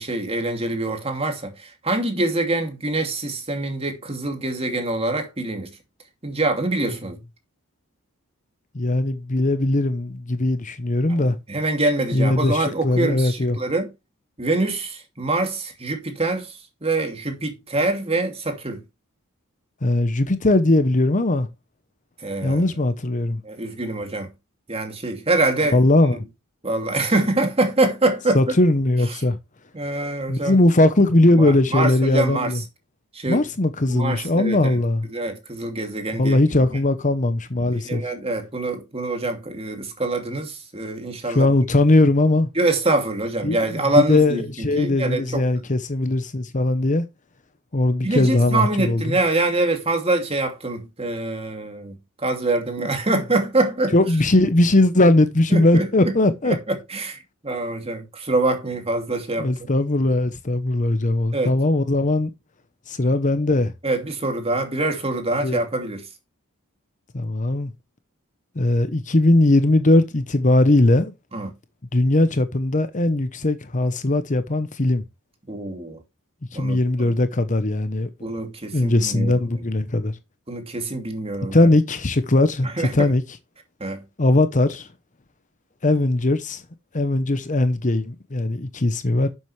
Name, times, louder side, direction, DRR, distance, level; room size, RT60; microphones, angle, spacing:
voice 1, 0.0-5.7 6.2-7.2 11.2-13.9 14.4-18.8 22.2-22.6 23.4-24.3 24.7-25.8 26.6-28.4 29.7-30.6 31.3-32.6 33.1-33.4 33.9-34.8 35.1-36.7 37.7-41.5 42.5-45.4 48.0-52.0 52.2-53.9 55.5-56.2 56.4-59.5 61.3-61.5 63.8-66.1 71.3-71.5 75.5-76.0 76.5-77.1 78.2-79.4 80.5-81.7 82.6-83.1 83.8-84.0, right 2 dB, 25° right, 2.6 m, -25 dB
voice 2, 8.7-11.4 12.1-13.6 19.8-21.5 22.4-23.4 25.7-26.2 28.3-29.4 30.3-32.6 33.3-35.0 36.2-38.0 41.3-42.5 43.4-47.1 47.7-49.2 52.8-53.2 53.9-56.6 59.4-62.3 62.9-63.7 65.4-65.6 67.1-67.7 68.6-71.1 71.9-75.0 76.5-78.1 78.7-80.1 81.5-83.2 84.2-84.9 85.8-86.6 86.9-89.3, left 2 dB, 35° left, 0.9 m, -19 dB
11.5 x 7.7 x 3.3 m
head